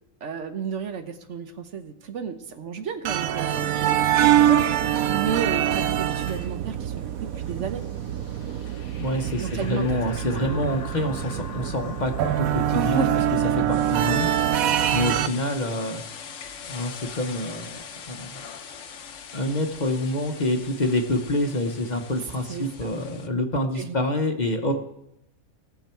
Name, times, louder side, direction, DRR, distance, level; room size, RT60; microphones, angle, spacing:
voice 1, 0.2-7.8 9.4-9.9 10.4-10.6 12.7-13.1 22.5-22.7 23.7-24.0, right 6 dB, 65° right, 8 dB, 1.1 m, -32 dB
sound 1, 3.0-15.3, right 11 dB, 85° right, 1.1 m, -24 dB
sound 2, 5.9-23.3, left 7 dB, 65° left, 1.2 m, -43 dB
voice 2, 9.0-13.0 13.5-14.3 14.9-16.0 16.7-18.4 19.3-24.7, left 1 dB, 35° left, 4 dB, 1.0 m, -27 dB
18.0 x 7.0 x 4.5 m, 0.82 s
omnidirectional pair, 1.4 m